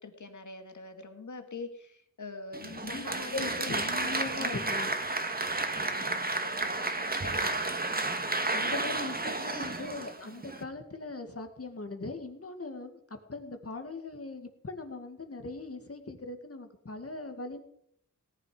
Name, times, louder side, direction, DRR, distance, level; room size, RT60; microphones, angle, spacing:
voice 1, 0.0-3.7 4.3-4.8 5.7-7.9, left 3 dB, 70° left, 6 dB, 2.0 m, -44 dB
Applause, 2.5-10.6, right 2 dB, 30° right, 1.5 m, -32 dB
voice 2, 3.3-4.9 5.9-6.2 8.5-13.0 13.3-17.6, left 3 dB, 50° left, 6 dB, 2.0 m, -40 dB
18.0 x 10.5 x 5.1 m, 0.67 s
wide cardioid pair, 85°, 31 cm